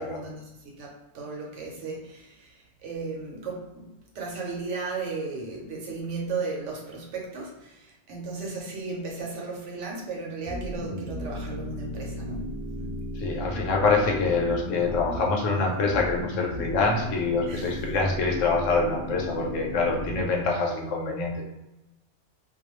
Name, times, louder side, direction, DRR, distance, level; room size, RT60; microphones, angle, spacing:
voice 1, 0.0-3.9 4.1-13.1 17.5-17.7, right 3 dB, 75° right, -2 dB, 1.0 m, -35 dB
sound 1, 10.4-20.3, equal, 40° right, 0.7 m, -35 dB
voice 2, 13.2-21.4, left 4 dB, 85° left, 0 dB, 1.0 m, -25 dB
2.3 x 2.2 x 3.0 m, 1.0 s
omnidirectional pair, 1.3 m